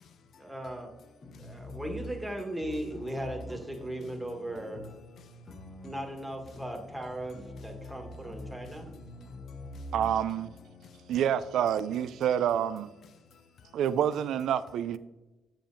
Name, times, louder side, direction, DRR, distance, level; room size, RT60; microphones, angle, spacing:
voice 1, 0.4-0.9 1.4-4.8 5.8-8.9, right 1 dB, 5° right, 1.4 m, -37 dB
sound 1, 1.2-14.0, left 1 dB, 40° left, 0.9 m, -47 dB
voice 2, 1.3-1.8 5.2-5.8 7.8-8.0 8.6-8.7 9.2-9.9 10.8-11.0 13.3-13.8, left 6 dB, 65° left, 0.5 m, -58 dB
voice 3, 9.9-10.5 11.1-12.9 13.7-15.0, right 9 dB, 75° right, 0.3 m, -28 dB
7.4 x 6.9 x 2.6 m
cardioid pair, 90°, 0 cm